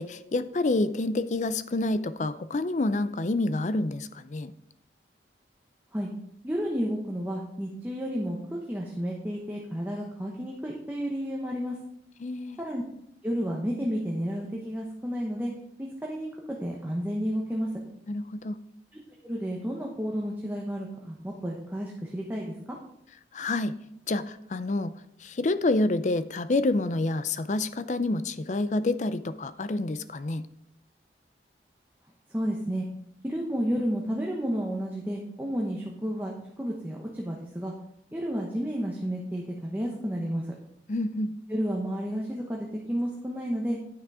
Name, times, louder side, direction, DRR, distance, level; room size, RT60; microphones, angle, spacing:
voice 1, 0.0-4.5 12.2-12.6 18.1-18.6 23.3-23.7 24.1-24.9 25.2-30.5 40.9-41.3, left 2 dB, 40° left, 14 dB, 0.4 m, -28 dB
voice 2, 6.4-11.8 12.6-12.8 13.2-15.5 15.8-17.7 19.2-22.5 32.3-32.8 33.2-37.7 38.1-40.5 41.5-43.8, equal, 10° right, -2 dB, 0.9 m, -31 dB
9.3 x 5.9 x 4.8 m, 0.76 s
head